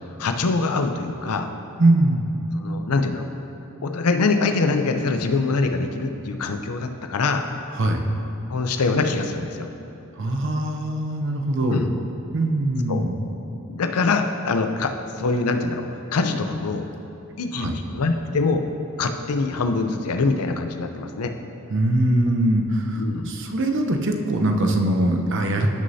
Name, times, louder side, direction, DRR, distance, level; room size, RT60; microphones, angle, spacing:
voice 1, 0.2-1.5 2.5-3.2 3.8-7.4 8.5-9.7 11.7-11.9 12.9-13.0 13.7-14.9 15.2-15.8 16.1-16.8 17.4-18.6 19.0-21.3 23.0-23.3, left 3 dB, 80° left, 6 dB, 0.6 m, -24 dB
voice 2, 1.8-2.3 7.7-8.0 10.2-11.8 12.3-13.1 17.5-17.8 21.7-25.7, right 1 dB, 55° right, 4 dB, 0.7 m, -22 dB
15.0 x 6.4 x 2.8 m, 2.9 s
head